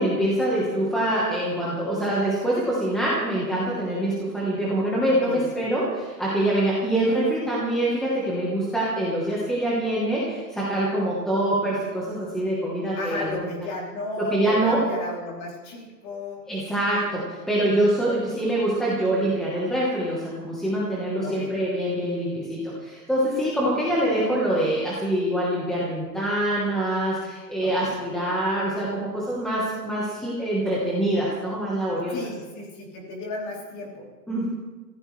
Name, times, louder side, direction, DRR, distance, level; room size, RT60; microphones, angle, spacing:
voice 1, 0.0-13.4 14.2-14.8 16.5-32.2 34.3-34.5, right 1 dB, ahead, -7 dB, 1.2 m, -25 dB
voice 2, 5.2-5.6 13.0-16.4 21.2-21.5 27.6-27.9 32.1-34.1, left 2 dB, 25° left, -2 dB, 3.3 m, -34 dB
24.0 x 15.5 x 3.3 m, 1.3 s
hypercardioid pair, 170°, 49 cm